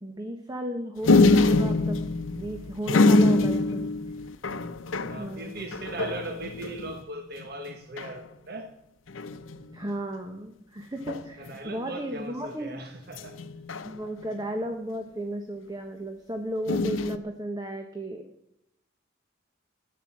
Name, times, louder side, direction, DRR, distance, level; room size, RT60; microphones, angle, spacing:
voice 1, 0.0-2.0 2.3-3.9 5.1-5.5 9.7-12.8 13.8-18.2, right 1 dB, 20° right, 5 dB, 1.1 m, -34 dB
sound 1, 1.0-7.0 7.4-7.5 7.7-8.2 9.1-9.7 11.0-11.5 13.1-14.4 16.7-17.2, left 2 dB, 75° left, 0.7 m, -24 dB
voice 2, 5.1-8.7 11.4-13.3, right 2 dB, 50° right, 5 dB, 1.3 m, -38 dB
13.5 x 9.6 x 7.2 m, 0.80 s
head